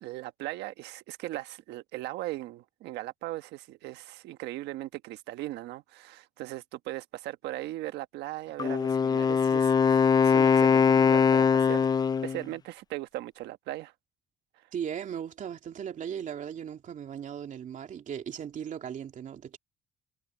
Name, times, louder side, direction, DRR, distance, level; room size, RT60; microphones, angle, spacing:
voice 1, 0.0-11.9 12.2-13.9 14.6-14.7, right 16 dB, 85° right, 1.3 m, -38 dB
Wind instrument woodwind instrument, 8.6-12.4, left 6 dB, 25° left, 0.4 m, -22 dB
voice 2, 14.7-19.6, right 8 dB, 50° right, 2.8 m, -37 dB
cardioid pair, 110°, 17 cm